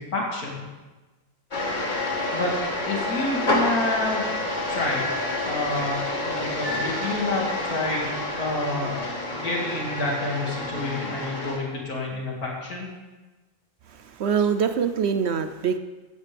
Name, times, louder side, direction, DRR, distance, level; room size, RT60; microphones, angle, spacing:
voice 1, 0.1-0.7 2.3-2.5 2.9-4.2 4.7-5.0 5.4-9.0 9.3-12.9, left 2 dB, 75° left, -2 dB, 2.9 m, -28 dB
sound 1, 1.5-11.6, left 2 dB, 30° left, 1.7 m, -28 dB
voice 2, 13.9-15.8, right 7 dB, 60° right, 10 dB, 0.7 m, -24 dB
16.0 x 8.4 x 3.5 m, 1.2 s
omnidirectional pair, 1.6 m